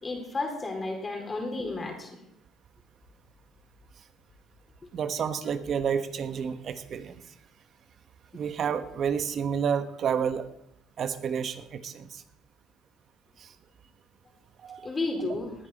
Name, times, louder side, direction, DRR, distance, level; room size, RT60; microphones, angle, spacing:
voice 1, 0.0-2.2 14.8-15.5, left 2 dB, 30° left, 2 dB, 4.3 m, -32 dB
voice 2, 4.9-7.2 8.3-10.5 11.0-12.2 13.4-13.5 14.6-14.9, right 7 dB, 55° right, 10 dB, 1.3 m, -30 dB
19.0 x 10.0 x 4.3 m, 0.78 s
supercardioid pair, 75°, 0 cm